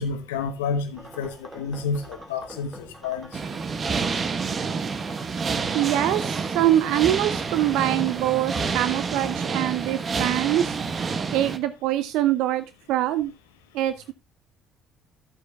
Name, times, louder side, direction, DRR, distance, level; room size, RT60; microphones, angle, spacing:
voice 1, 0.0-3.4, left 5 dB, 80° left, 1.0 m, -30 dB
sound 1, 0.9-9.7, right 1 dB, 20° right, 2.1 m, -44 dB
sound 2, 3.3-11.6, right 5 dB, 40° right, 1.0 m, -28 dB
voice 2, 5.7-10.8 11.3-13.3 13.7-14.1, right 13 dB, 70° right, 0.4 m, -24 dB
13.0 x 8.4 x 2.3 m
hypercardioid pair, 55°, 0 cm